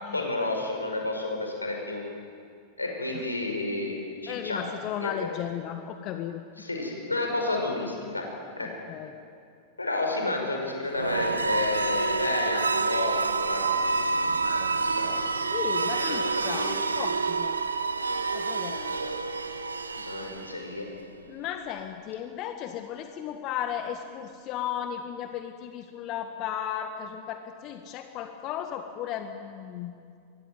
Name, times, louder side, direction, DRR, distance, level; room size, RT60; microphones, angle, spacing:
voice 1, 0.1-2.0 2.8-4.6 5.0-5.1 6.6-8.3 8.6-8.7 9.8-15.1 15.9-16.7 19.9-20.9, left 2 dB, 80° left, 2 dB, 5.5 m, -31 dB
voice 2, 4.3-6.4 8.6-9.1 15.5-17.6 18.3-19.2 21.3-29.9, left 9 dB, 40° left, 7 dB, 1.6 m, -35 dB
sound 1, 10.9-20.8, right 4 dB, 75° right, 1.3 m, -28 dB
24.0 x 22.0 x 9.5 m, 2.4 s
figure-of-eight pair, 90°, 0 cm